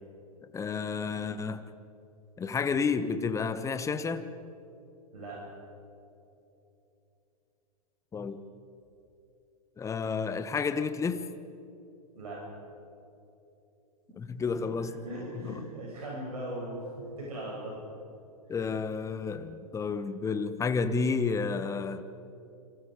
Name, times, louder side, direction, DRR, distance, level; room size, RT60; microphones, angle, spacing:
voice 1, 0.5-1.7 2.4-4.3 8.1-8.4 9.8-11.3 14.2-14.9 15.4-15.6 18.5-22.0, left 5 dB, 15° left, 11 dB, 1.3 m, -31 dB
voice 2, 14.4-17.8, right 1 dB, 75° right, -4 dB, 7.3 m, -39 dB
28.5 x 27.0 x 5.1 m, 2.8 s
figure-of-eight pair, 105°, 20 cm